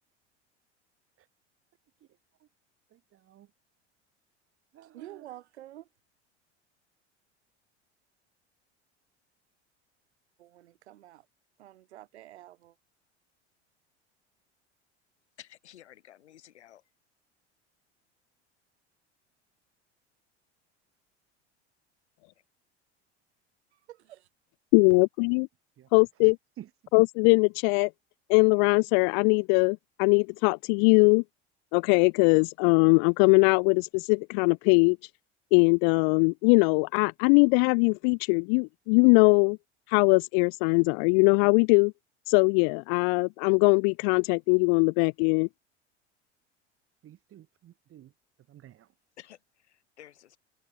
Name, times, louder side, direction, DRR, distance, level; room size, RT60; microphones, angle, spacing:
voice 1, 2.0-2.5 2.9-3.5 4.7-5.3 25.8-26.9 47.0-48.1 48.5-48.9, right 12 dB, 40° right, 4.0 m, -52 dB
voice 2, 4.9-5.9 10.4-11.3 11.6-12.8 23.7-24.3, right 14 dB, 65° right, 8.0 m, -48 dB
voice 3, 15.4-16.9 49.2-50.4, left 12 dB, 70° left, 4.8 m, -53 dB
voice 4, 24.7-25.5 25.9-26.3 26.9-27.9 28.3-31.2 31.7-35.0 35.5-39.6 39.9-41.9 42.3-45.5, left 40 dB or more, 45° left, 0.4 m, -21 dB
figure-of-eight pair, 75°, 35 cm